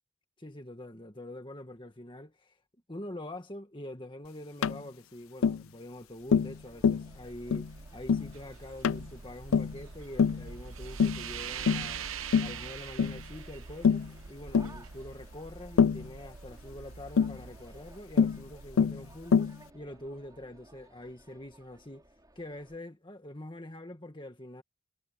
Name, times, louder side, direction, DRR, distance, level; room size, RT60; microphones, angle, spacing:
voice 1, 0.4-2.6 2.9-12.1 12.4-22.1 22.3-24.6, left 1 dB, 25° left, 1.8 m, -45 dB
Tap, 4.6-4.8 5.4-5.6 6.3-6.6 6.8-7.1 7.5-7.7 8.1-8.3 8.8-9.1 9.5-9.8 10.2-10.4 11.0-11.2 11.7-11.9 12.3-12.6 13.0-13.2 13.8-14.1 14.5-14.7 15.8-16.1 17.2-17.4 18.2-18.4 18.8-19.0 19.3-19.6, left 6 dB, 75° left, 0.4 m, -25 dB
sound 1, 6.1-20.3, right 6 dB, 70° right, 1.0 m, -45 dB
sound 2, 6.3-22.8, right 2 dB, 20° right, 5.6 m, -59 dB
head